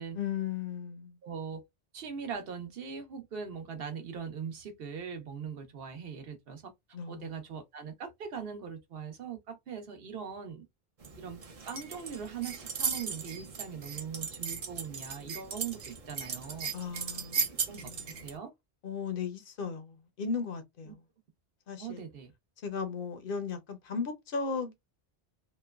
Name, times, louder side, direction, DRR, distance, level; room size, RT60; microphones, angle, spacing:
voice 1, 0.1-1.2 6.9-7.3 16.7-17.5 17.7-18.2 18.8-21.0 21.7-22.0 22.6-24.8, left 5 dB, 65° left, 0.8 m, -36 dB
voice 2, 1.2-1.6 1.9-6.7 7.1-10.7 11.2-11.4 11.7-16.7 17.3-17.9 18.2-18.5 20.9-21.0 21.8-22.3, right 6 dB, 70° right, 0.9 m, -41 dB
sound 1, 11.0-18.4, right 6 dB, 45° right, 0.5 m, -37 dB
2.9 x 2.1 x 2.2 m
omnidirectional pair, 1.0 m